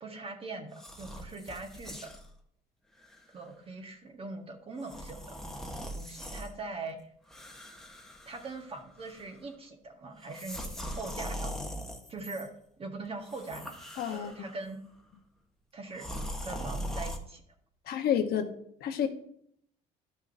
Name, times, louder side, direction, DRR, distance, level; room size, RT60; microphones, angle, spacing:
voice 1, 0.0-2.1 3.3-5.2 5.9-7.0 8.2-11.8 12.1-12.5 12.8-14.8 15.7-16.1 16.4-17.4, right 3 dB, 35° right, 4 dB, 1.5 m, -42 dB
sound 1, 0.7-2.3 3.0-3.2 4.8-6.5 7.3-8.7 9.0-9.4 10.2-12.5 13.2-14.6 15.9-17.2, equal, 5° left, 1.1 m, -40 dB
voice 2, 14.0-14.3 17.8-18.5 18.8-19.1, left 9 dB, 70° left, 5 dB, 1.1 m, -29 dB
12.5 x 6.1 x 2.7 m, 0.69 s
cardioid pair, 110°, 17 cm